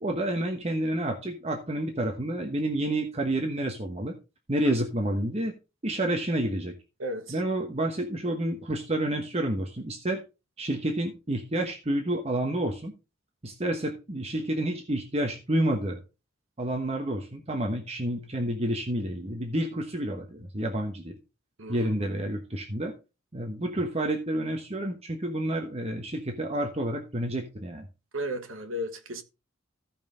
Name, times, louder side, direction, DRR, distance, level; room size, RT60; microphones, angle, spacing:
voice 1, 0.0-4.1 4.5-5.5 5.8-6.7 7.3-10.2 10.6-12.9 13.4-16.0 16.6-21.2 21.7-22.9 23.3-27.9, right 1 dB, 30° right, 1.1 m, -29 dB
voice 2, 7.0-7.3 21.6-21.9 28.1-29.2, equal, 75° right, 1.4 m, -34 dB
14.5 x 5.5 x 3.8 m
head